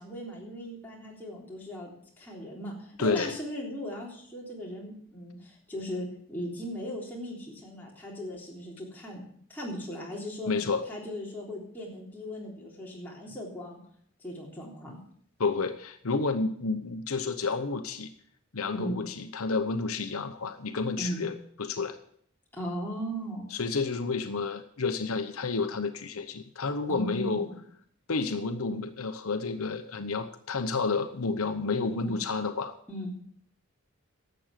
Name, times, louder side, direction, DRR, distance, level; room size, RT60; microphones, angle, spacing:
voice 1, 0.0-9.2 9.5-10.5 10.9-13.8 14.2-15.0 18.7-19.0 21.0-21.2 22.5-23.5 26.9-27.6 32.0-32.1 32.9-33.1, equal, 10° left, -4 dB, 3.5 m, -38 dB
voice 2, 3.0-3.3 10.5-10.8 15.4-18.1 18.5-21.3 21.6-22.0 23.5-27.5 28.1-32.7, left 4 dB, 75° left, 8 dB, 0.9 m, -30 dB
11.5 x 7.8 x 7.5 m, 0.64 s
head